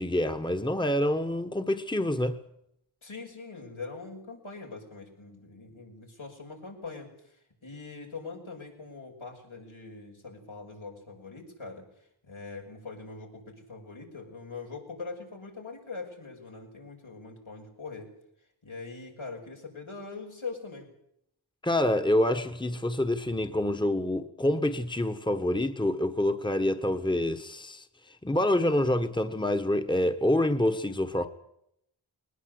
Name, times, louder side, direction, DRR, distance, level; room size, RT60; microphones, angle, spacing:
voice 1, 0.0-2.4 21.6-27.8 28.2-31.3, left 1 dB, 10° left, 1.4 m, -27 dB
voice 2, 3.0-18.1 18.6-20.9, left 4 dB, 85° left, 6.1 m, -42 dB
21.0 x 19.5 x 7.9 m
wide cardioid pair, 55°, 47 cm